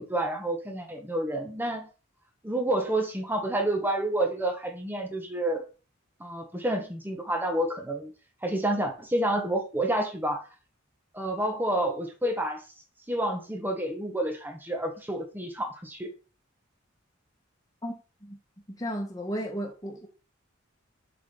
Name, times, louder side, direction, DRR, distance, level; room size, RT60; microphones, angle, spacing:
voice 1, 0.0-1.9 2.4-5.6 6.2-8.1 8.4-10.4 11.1-12.6 13.1-16.1, right 1 dB, 10° right, 4 dB, 1.6 m, -29 dB
voice 2, 18.8-20.1, equal, 15° left, -1 dB, 1.7 m, -33 dB
7.5 x 6.0 x 3.9 m, 0.34 s
head